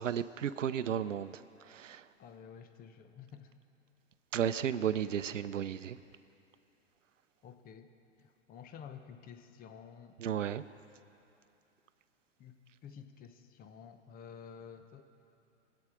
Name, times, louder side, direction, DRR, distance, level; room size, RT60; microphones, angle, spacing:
voice 1, 0.0-2.1 4.3-6.0 10.2-10.6, right 9 dB, 80° right, 14 dB, 0.6 m, -34 dB
voice 2, 2.2-3.5 7.4-7.9 8.2-10.2 12.4-15.0, left 7 dB, 25° left, 7 dB, 1.0 m, -51 dB
24.5 x 8.8 x 4.9 m, 2.9 s
hypercardioid pair, 105°, 37 cm